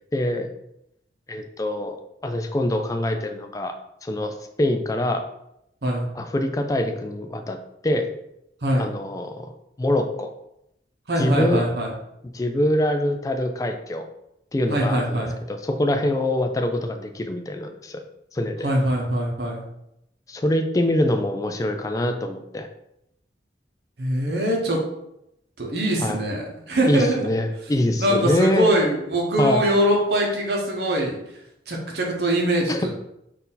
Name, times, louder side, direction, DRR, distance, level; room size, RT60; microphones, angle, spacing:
voice 1, 0.1-0.5 1.3-2.0 2.2-3.7 4.0-5.2 6.2-7.6 7.8-8.1 8.8-9.5 9.8-10.3 11.2-11.6 12.3-14.1 14.5-18.0 18.3-18.7 20.3-22.7 26.0-26.2 26.9-28.7 29.4-29.6 32.7-32.8, left 1 dB, 20° left, 6 dB, 0.3 m, -24 dB
voice 2, 11.1-11.9 14.7-15.4 18.6-19.6 24.0-24.8 25.6-27.3 28.0-31.2 31.7-32.9, right 1 dB, 70° right, -1 dB, 0.9 m, -22 dB
4.1 x 2.6 x 3.9 m, 0.82 s
head